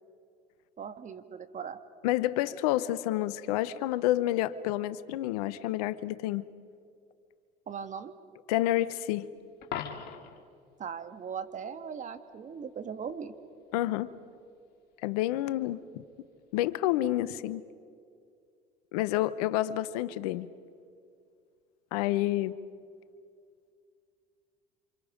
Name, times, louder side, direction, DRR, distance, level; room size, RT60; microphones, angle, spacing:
voice 1, 0.8-1.8 7.7-8.1 10.8-13.4, right 7 dB, 40° right, 9 dB, 1.7 m, -39 dB
voice 2, 2.0-6.4 8.5-9.3 13.7-14.1 15.0-15.8 16.5-17.6 18.9-20.5 21.9-22.6, left 14 dB, 80° left, 16 dB, 0.8 m, -29 dB
Coin (dropping), 9.6-10.5 16.5-16.7, left 9 dB, 60° left, 2.5 m, -38 dB
28.0 x 26.5 x 5.1 m, 2.3 s
hypercardioid pair, 75°, 19 cm